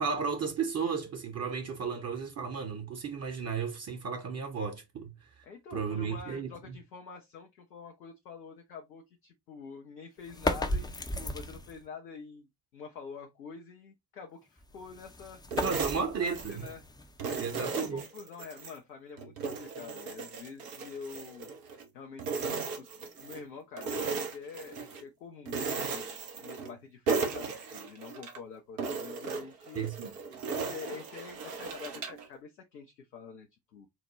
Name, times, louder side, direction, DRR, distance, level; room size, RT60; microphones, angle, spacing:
voice 1, 0.0-5.1 5.7-6.8 15.6-16.6 17.4-18.0 29.7-30.1, right 6 dB, 30° right, 0.8 m, -34 dB
voice 2, 5.4-15.4 16.0-16.8 17.3-21.5 21.9-29.8 30.5-33.9, left 5 dB, 85° left, 0.6 m, -47 dB
sound 1, 10.2-11.9 14.6-17.5, left 1 dB, 10° left, 0.5 m, -35 dB
sound 2, 15.5-16.8 17.2-18.8 19.2-21.9 22.2-23.4 23.8-25.0 25.5-26.8 27.1-28.4 28.8-32.3, right 4 dB, 75° right, 0.9 m, -36 dB
4.2 x 2.1 x 2.9 m
figure-of-eight pair, 40°, 49 cm